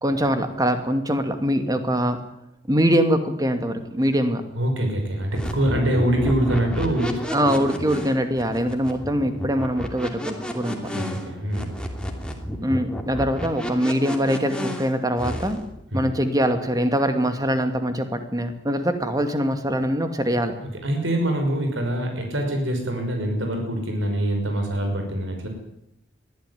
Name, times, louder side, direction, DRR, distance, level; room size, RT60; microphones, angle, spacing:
voice 1, 0.0-2.2 2.7-4.4 7.3-10.8 12.6-15.6 15.9-20.5, equal, 20° right, 7 dB, 2.4 m, -23 dB
voice 2, 4.5-7.2 10.7-11.7 15.9-16.0 20.8-25.5, right 1 dB, 85° right, 4 dB, 5.8 m, -24 dB
sound 1, 5.3-15.7, equal, 5° left, 2.9 m, -31 dB
22.5 x 15.0 x 9.7 m, 0.78 s
head